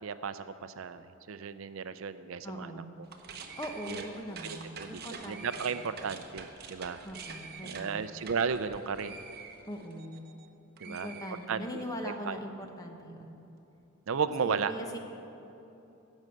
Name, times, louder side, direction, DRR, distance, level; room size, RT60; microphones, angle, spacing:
voice 1, 0.0-2.7 3.9-4.0 4.4-5.0 5.3-7.0 7.6-9.2 10.8-11.1 11.5-12.4 14.1-14.7, right 6 dB, 65° right, 12 dB, 0.4 m, -34 dB
voice 2, 2.4-2.9 3.6-5.9 7.0-8.0 9.7-10.2 10.8-13.3 14.4-15.0, equal, 15° left, 3 dB, 1.0 m, -41 dB
sound 1, 3.0-10.5 10.8-11.9, right 5 dB, 45° right, 0.9 m, -46 dB
16.0 x 6.3 x 7.8 m, 3.0 s
head